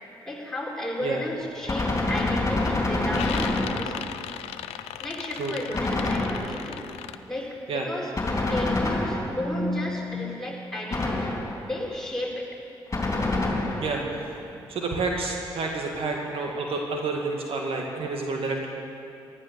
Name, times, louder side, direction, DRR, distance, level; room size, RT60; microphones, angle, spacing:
voice 1, 0.3-4.1 5.0-6.8 7.3-8.1 8.5-12.5, left 1 dB, 5° left, -3 dB, 4.3 m, -33 dB
sound 1, 1.4-1.7 2.1-2.6 2.9-7.2, left 11 dB, 80° left, 0.5 m, -37 dB
Gunshot gunfire, 1.7-4.2 5.7-6.8 8.1-9.6 10.9-11.7 12.9-14.1, left 2 dB, 30° left, 3.7 m, -27 dB
voice 2, 13.8-14.4 14.7-18.7, right 3 dB, 65° right, 1 dB, 1.9 m, -29 dB
14.5 x 12.5 x 6.9 m, 2.6 s
supercardioid pair, 50°, 10 cm